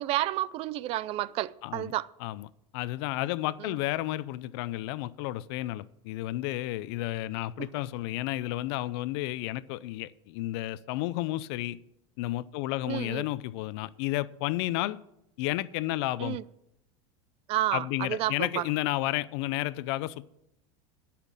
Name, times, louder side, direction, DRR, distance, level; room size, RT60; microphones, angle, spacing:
voice 1, 0.0-2.1 3.6-3.7 12.9-13.2 16.2-16.4 17.5-18.6, right 15 dB, 40° right, 0.4 m, -30 dB
voice 2, 1.6-1.9 2.2-2.5 2.7-11.8 12.2-15.0 15.4-16.4 17.7-20.2, left 16 dB, 65° left, 0.5 m, -32 dB
12.0 x 5.9 x 8.8 m
supercardioid pair, 130°, 15 cm